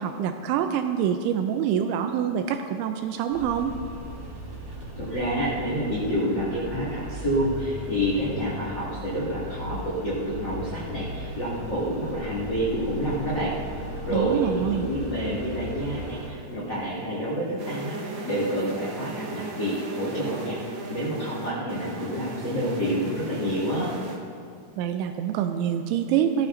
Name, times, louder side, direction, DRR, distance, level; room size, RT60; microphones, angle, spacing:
voice 1, 0.0-3.7 14.1-14.9 24.8-26.5, right 9 dB, 85° right, 6 dB, 2.7 m, -26 dB
sound 1, 3.3-16.3, equal, 35° right, 2.3 m, -37 dB
voice 2, 4.7-13.5 14.0-20.6 20.9-23.9, equal, 75° left, -9 dB, 1.0 m, -28 dB
sound 2, 17.6-24.2, right 3 dB, 70° right, 2.5 m, -36 dB
17.0 x 13.5 x 2.6 m, 2.3 s
omnidirectional pair, 5.8 m